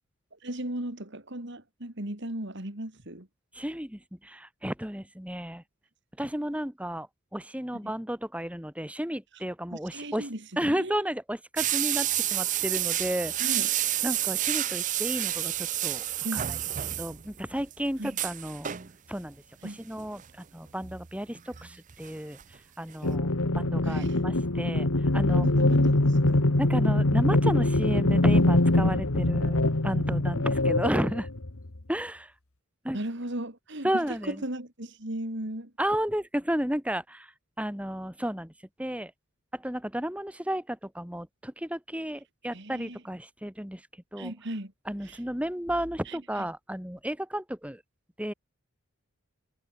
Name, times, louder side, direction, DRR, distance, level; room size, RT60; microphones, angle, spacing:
voice 1, 0.4-3.3 7.8-7.9 9.7-11.0 13.4-13.7 16.2-16.5 18.0-18.2 19.6-19.8 23.8-24.2 25.4-26.6 32.9-35.7 42.5-43.0 44.2-44.7 45.0-45.2 46.0-46.5, right 1 dB, 55° right, 2.9 m, -37 dB
voice 2, 3.5-5.6 6.2-7.1 7.3-10.3 10.6-13.6 14.0-16.0 16.3-16.4 17.0-18.7 19.1-19.4 19.6-22.4 22.8-24.9 25.1-25.5 26.6-31.3 31.9-32.3 32.8-33.0 33.8-34.3 35.8-37.3 37.6-38.5 38.8-39.1 39.5-43.8 44.1-44.3 44.9-47.8 48.2-48.3, equal, 5° right, 2.5 m, -32 dB
sound 1, 11.6-17.4 17.7-17.8 18.1-18.9 20.0-20.2 20.8-22.1 22.4-22.5 22.9-23.0, right 13 dB, 35° right, 0.6 m, -29 dB
sound 2, 23.0-31.8, left 2 dB, 75° left, 1.7 m, -23 dB
head